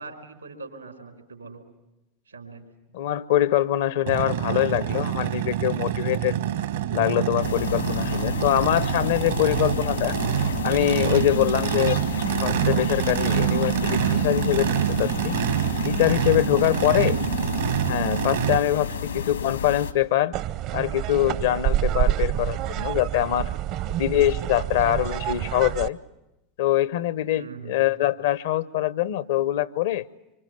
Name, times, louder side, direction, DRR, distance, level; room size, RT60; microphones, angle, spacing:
voice 1, 0.0-1.6 2.3-2.6 9.7-9.8 16.7-17.2 18.9-19.0 21.9-22.1 24.6-25.2 27.3-27.8, right 4 dB, 85° right, 4 dB, 4.4 m, -42 dB
voice 2, 2.9-6.4 6.9-10.2 10.6-12.0 12.4-15.4 15.8-17.2 17.9-20.3 20.7-23.5 23.9-26.0 26.6-30.1, left 12 dB, 65° left, 18 dB, 0.9 m, -24 dB
Race car auto racing / Idling / Accelerating revving vroom, 4.1-18.6, right 11 dB, 70° right, 1.5 m, -26 dB
sound 1, 7.4-19.9, left 7 dB, 80° left, 1.9 m, -31 dB
sound 2, 20.3-25.9, right 12 dB, 50° right, 0.9 m, -27 dB
26.0 x 25.5 x 8.0 m, 0.95 s
figure-of-eight pair, 80°, 0 cm